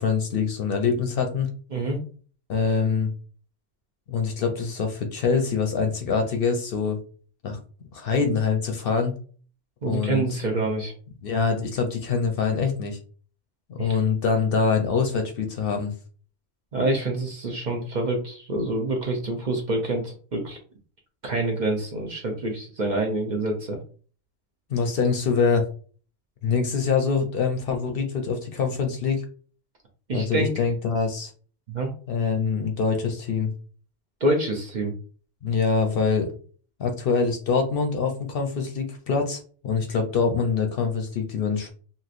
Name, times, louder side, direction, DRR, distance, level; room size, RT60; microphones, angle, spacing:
voice 1, 0.0-1.5 2.5-3.1 4.1-7.0 7.4-7.6 7.9-9.1 9.8-10.4 11.2-13.0 13.7-15.9 24.7-25.6 26.4-29.2 30.1-31.3 32.1-33.5 35.4-36.3 36.8-41.7, left 5 dB, 60° left, 4 dB, 0.7 m, -24 dB
voice 2, 9.8-10.9 13.8-14.0 16.7-20.6 21.2-23.8 30.1-30.5 31.7-31.9 34.2-34.9, right 2 dB, 50° right, 1 dB, 0.6 m, -26 dB
3.0 x 2.8 x 2.5 m, 0.41 s
omnidirectional pair, 1.2 m